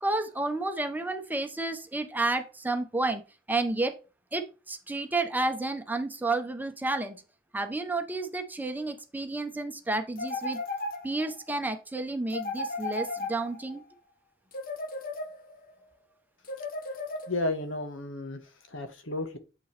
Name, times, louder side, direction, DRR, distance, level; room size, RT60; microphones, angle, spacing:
voice 1, 0.0-3.2 3.5-3.9 4.3-7.2 7.5-10.6 11.0-13.8, right 2 dB, 10° right, 0.9 m, -31 dB
sound 1, 10.2-11.4 12.3-13.8 14.5-15.7 16.4-17.6, left 2 dB, 45° left, 1.0 m, -35 dB
voice 2, 17.3-18.4 18.7-19.4, left 2 dB, 75° left, 1.5 m, -32 dB
7.8 x 5.3 x 3.4 m
head